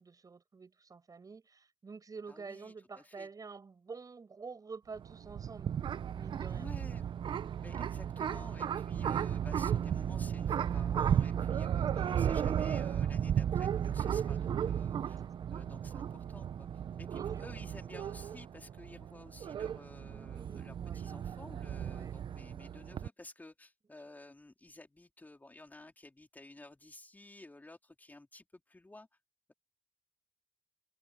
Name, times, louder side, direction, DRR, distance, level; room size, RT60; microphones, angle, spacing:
voice 1, 0.0-5.8 6.1-6.7 7.7-7.8 12.1-12.2 15.2-15.6 15.9-16.3 17.1-17.4 20.0-21.0 21.8-22.1, right 4 dB, 40° right, 7.1 m, -49 dB
voice 2, 2.3-3.3 6.5-7.0 7.6-15.2 15.5-16.7 17.0-29.1, left 2 dB, 20° left, 3.6 m, -53 dB
sound 1, 5.0-23.1, right 9 dB, 65° right, 1.0 m, -34 dB
open air
supercardioid pair, 60°, 9 cm